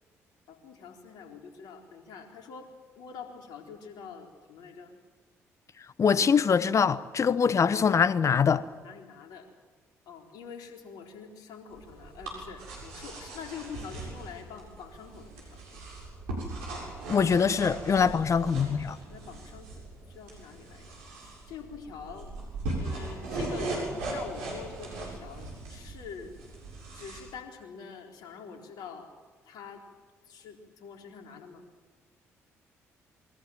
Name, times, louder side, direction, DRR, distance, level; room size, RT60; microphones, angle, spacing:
voice 1, 0.5-4.9 8.5-9.5 10.1-15.9 19.1-21.0 21.5-22.3 22.8-26.4 26.9-29.1 29.4-29.9 30.3-31.6, left 6 dB, 65° left, 4.0 m, -45 dB
voice 2, 6.0-8.6 17.1-19.0, left 6 dB, 40° left, 1.3 m, -23 dB
sound 1, 11.7-27.2, right 2 dB, 75° right, 7.6 m, -39 dB
28.0 x 22.5 x 7.8 m
figure-of-eight pair, 45°, 7 cm